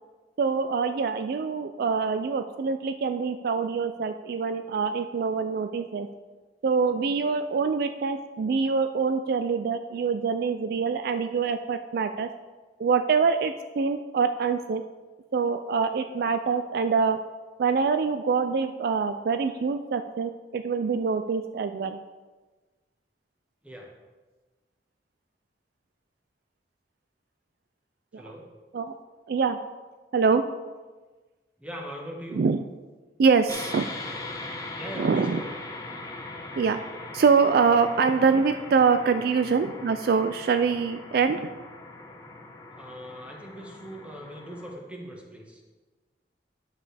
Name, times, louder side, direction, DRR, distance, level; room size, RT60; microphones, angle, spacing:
voice 1, 0.4-6.1 6.6-12.3 12.8-14.8 15.3-17.2 17.6-22.0 28.1-28.2 28.7-28.9 29.3-29.6 30.1-30.4 32.3-32.6 33.2-33.9 35.0-35.4 36.6-36.8 37.1-41.4, right 5 dB, 60° right, 9 dB, 0.3 m, -25 dB
voice 2, 28.2-28.5 31.6-32.5 34.8-35.5 42.7-45.6, equal, 5° right, -1 dB, 1.4 m, -40 dB
sound 1, 33.5-44.7, left 2 dB, 20° left, 0.9 m, -40 dB
9.6 x 7.5 x 3.4 m, 1.3 s
head